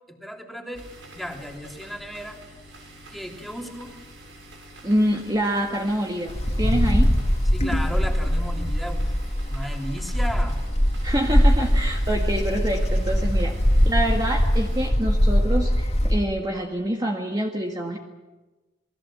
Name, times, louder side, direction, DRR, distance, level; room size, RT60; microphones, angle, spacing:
voice 1, 0.1-0.8 1.1-2.4 3.1-3.9 7.5-9.1 9.5-10.6, equal, ahead, 1 dB, 3.2 m, -34 dB
sound 1, 0.7-14.9, right 1 dB, 80° right, 7.5 m, -46 dB
voice 2, 4.8-7.1 11.0-13.6 13.9-18.0, right 1 dB, 20° right, 1 dB, 1.8 m, -26 dB
Wind, 6.3-16.3, equal, 35° left, 2.4 m, -21 dB
28.0 x 20.5 x 7.6 m, 1.2 s
head